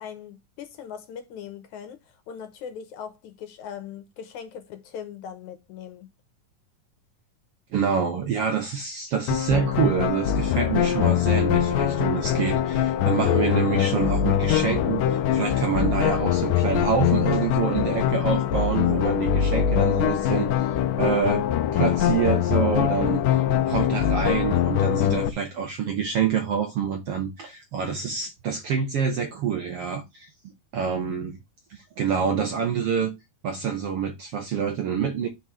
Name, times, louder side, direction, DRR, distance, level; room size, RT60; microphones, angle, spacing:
voice 1, 0.0-6.1, left 8 dB, 70° left, 2.3 m, -40 dB
voice 2, 7.7-21.4 21.7-30.3 30.7-31.4 31.7-33.1 33.4-35.3, right 7 dB, 65° right, 1.5 m, -27 dB
sound 1, 9.3-25.3, left 10 dB, 90° left, 2.4 m, -23 dB
5.6 x 4.1 x 6.0 m
omnidirectional pair, 3.8 m